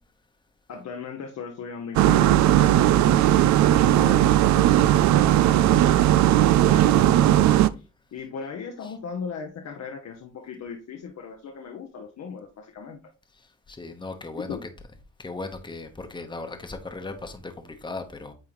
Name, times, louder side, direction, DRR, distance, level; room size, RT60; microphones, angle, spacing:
voice 1, 0.7-6.1 6.4-13.0 14.3-14.6, left 5 dB, 60° left, 1.0 m, -38 dB
sound 1, 2.0-7.7, right 12 dB, 70° right, 0.5 m, -18 dB
voice 2, 13.7-14.6 15.2-18.3, left 3 dB, 15° left, 1.1 m, -37 dB
8.9 x 3.6 x 3.1 m
cardioid pair, 90°, 30 cm